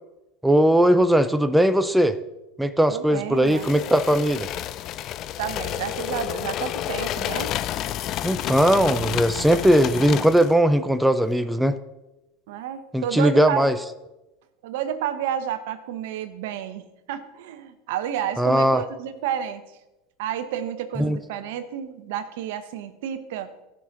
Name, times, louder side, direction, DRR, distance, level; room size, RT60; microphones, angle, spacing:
voice 1, 0.4-2.2 2.6-4.5 8.2-11.8 12.9-13.8 18.4-18.8 21.0-21.2, right 1 dB, 5° right, 10 dB, 0.6 m, -19 dB
voice 2, 2.9-3.7 5.4-7.6 12.5-13.8 14.6-16.8 17.1-19.6 20.2-23.5, right 9 dB, 70° right, 11 dB, 0.9 m, -30 dB
sound 1, 3.5-10.6, left 12 dB, 50° left, 0.4 m, -30 dB
15.5 x 6.1 x 4.2 m, 0.99 s
hypercardioid pair, 100°, 0 cm